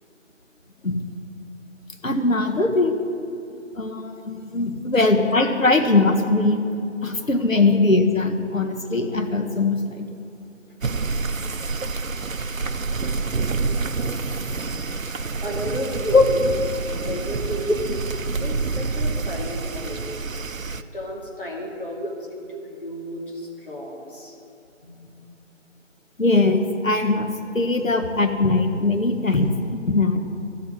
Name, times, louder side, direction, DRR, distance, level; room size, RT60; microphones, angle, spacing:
voice 1, 2.0-3.0 3.8-6.6 7.0-10.1 16.1-16.2 26.2-30.2, left 3 dB, 80° left, 5 dB, 1.7 m, -20 dB
sound 1, 10.8-20.8, right 4 dB, 80° right, 0.8 m, -27 dB
voice 2, 15.1-16.5 17.1-17.9 18.4-20.2 20.9-24.3 24.8-25.2, equal, 40° left, -3 dB, 2.8 m, -33 dB
13.0 x 8.1 x 9.4 m, 2.7 s
figure-of-eight pair, 170°, 40 cm